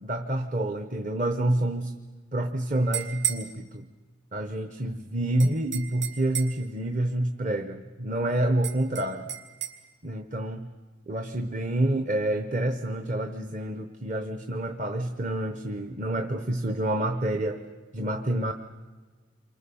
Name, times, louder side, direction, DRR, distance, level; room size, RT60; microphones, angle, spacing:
voice 1, 0.0-1.9 2.3-3.9 4.3-9.3 10.0-10.7 11.1-17.6 17.9-18.5, right 1 dB, 40° right, 7 dB, 0.9 m, -28 dB
sound 1, 2.7-3.5 5.4-6.6 8.6-9.8, right 11 dB, 60° right, 2.6 m, -33 dB
28.5 x 24.0 x 7.0 m, 1.4 s
head